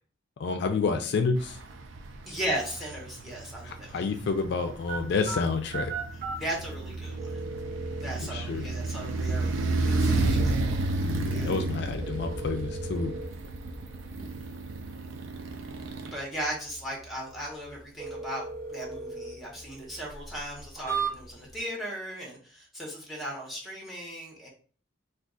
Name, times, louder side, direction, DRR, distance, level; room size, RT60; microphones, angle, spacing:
voice 1, 0.4-1.6 3.6-5.9 8.3-8.7 11.0-13.2, left 4 dB, 60° left, 6 dB, 0.3 m, -29 dB
sound 1, 1.4-16.1, right 2 dB, 80° right, 0.4 m, -32 dB
voice 2, 2.3-4.0 6.4-7.4 8.0-10.6 11.3-11.5 16.1-24.5, right 1 dB, ahead, -2 dB, 0.9 m, -37 dB
sound 2, 4.9-21.6, right 4 dB, 45° right, 1.1 m, -40 dB
2.4 x 2.3 x 3.6 m, 0.43 s
head